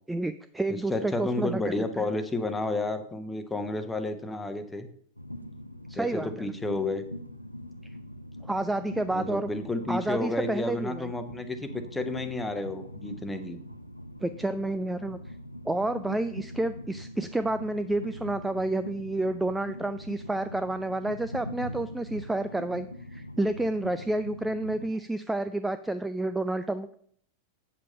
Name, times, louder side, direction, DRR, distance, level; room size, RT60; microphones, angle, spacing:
voice 1, 0.1-1.6 2.0-2.1 5.9-6.5 8.5-9.5 9.9-11.1 14.2-15.2 15.7-26.9, right 2 dB, 5° right, 11 dB, 0.4 m, -30 dB
voice 2, 0.7-4.9 5.9-7.0 9.1-13.6, left 2 dB, 10° left, 8 dB, 1.1 m, -31 dB
Train, 5.2-24.9, equal, 90° left, 0.5 m, -42 dB
8.2 x 7.4 x 5.4 m, 0.63 s
figure-of-eight pair, 90°, 0 cm